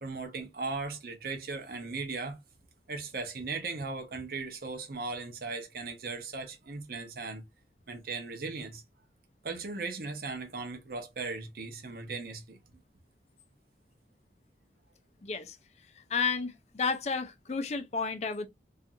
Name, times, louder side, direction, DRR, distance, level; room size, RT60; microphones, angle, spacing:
voice 1, 0.0-2.4 2.9-7.4 7.9-8.8 9.4-12.6, right 4 dB, 55° right, 0.6 m, -37 dB
voice 2, 15.2-15.6 16.1-18.5, left 5 dB, 35° left, 0.4 m, -31 dB
2.5 x 2.4 x 2.6 m
head